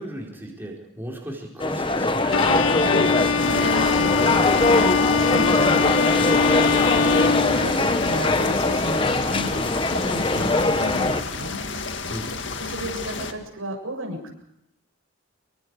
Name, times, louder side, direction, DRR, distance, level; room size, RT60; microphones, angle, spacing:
voice 1, 0.0-2.6 12.1-12.4, right 1 dB, 10° right, -2 dB, 4.6 m, -36 dB
sound 1, 1.6-11.2, left 2 dB, 25° left, 1.2 m, -22 dB
Bowed string instrument, 2.3-8.2, left 5 dB, 80° left, 2.0 m, -23 dB
voice 2, 2.8-11.6 12.6-14.3, equal, 90° right, 2 dB, 7.5 m, -33 dB
sound 2, 3.4-13.3, left 4 dB, 60° left, 2.0 m, -32 dB
27.5 x 23.5 x 4.9 m, 0.78 s
head